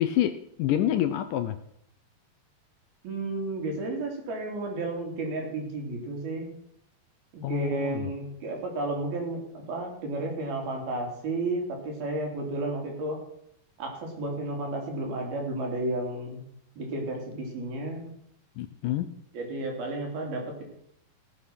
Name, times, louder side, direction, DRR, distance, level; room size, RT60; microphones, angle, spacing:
voice 1, 0.0-1.6 7.4-8.1 18.6-19.1, left 12 dB, 75° left, 9 dB, 2.0 m, -27 dB
voice 2, 3.0-6.5 7.3-13.2 13.8-16.4 16.8-18.2 19.3-20.6, right 2 dB, 75° right, 1 dB, 5.2 m, -32 dB
17.0 x 7.8 x 6.2 m, 0.73 s
omnidirectional pair, 4.4 m